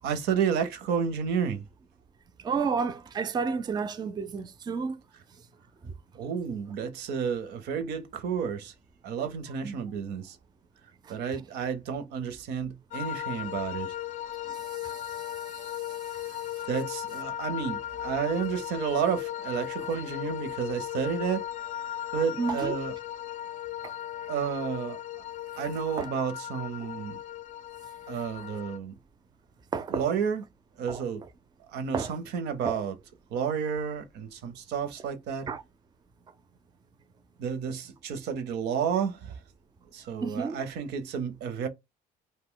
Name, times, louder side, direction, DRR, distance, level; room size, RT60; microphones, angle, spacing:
voice 1, 0.0-1.6 6.1-8.7 9.0-10.4 11.1-13.9 16.7-21.5 22.1-22.9 24.3-25.0 25.6-27.2 28.1-28.9 29.9-30.4 30.8-31.2 31.7-32.9 33.3-35.5 37.4-39.4 39.9-41.7, right 7 dB, 80° right, 0.7 m, -31 dB
voice 2, 2.4-5.0 5.8-5.9 9.6-9.7 11.0-11.2 14.4-16.7 22.4-22.8 23.8-24.0 26.0-26.1 26.8-26.9 28.4-28.5 29.7-30.1 30.9-31.0 31.9-32.1 32.6-32.9 35.5-35.6 40.2-40.6, right 5 dB, 25° right, 0.4 m, -32 dB
sound 1, 12.9-28.8, left 12 dB, 50° left, 0.4 m, -37 dB
2.6 x 2.1 x 3.8 m
cardioid pair, 110°, 17 cm